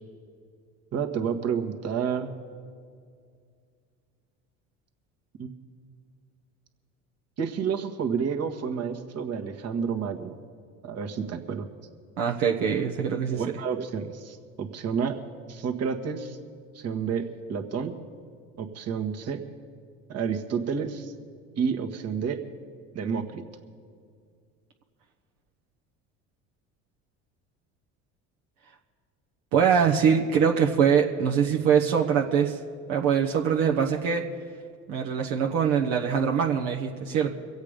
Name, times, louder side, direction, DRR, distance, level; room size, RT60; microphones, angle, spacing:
voice 1, 0.9-2.4 5.4-5.5 7.4-10.4 10.8-11.7 13.3-15.2 15.5-16.4 16.8-18.0 18.6-19.4 20.1-21.1 21.6-22.4 22.9-23.4, right 6 dB, 45° right, 6 dB, 1.6 m, -30 dB
voice 2, 12.2-13.4 29.5-32.5 32.9-34.2 34.9-37.3, right 7 dB, 70° right, 1 dB, 1.2 m, -23 dB
23.5 x 8.2 x 5.1 m, 2.1 s
supercardioid pair, 85°, 34 cm